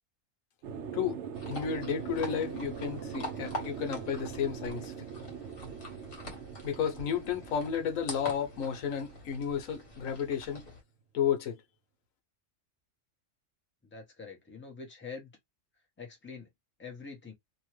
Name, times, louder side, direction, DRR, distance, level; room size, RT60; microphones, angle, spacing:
sound 1, 0.6-10.3, right 7 dB, 70° right, 0.8 m, -42 dB
sound 2, 1.3-10.8, left 1 dB, 45° left, 1.4 m, -45 dB
voice 1, 1.5-4.9 6.6-10.7 11.1-11.6, left 8 dB, 90° left, 1.2 m, -32 dB
voice 2, 13.9-15.3 16.0-16.5 16.8-17.3, left 5 dB, 10° left, 0.8 m, -45 dB
2.9 x 2.2 x 3.1 m
omnidirectional pair, 1.3 m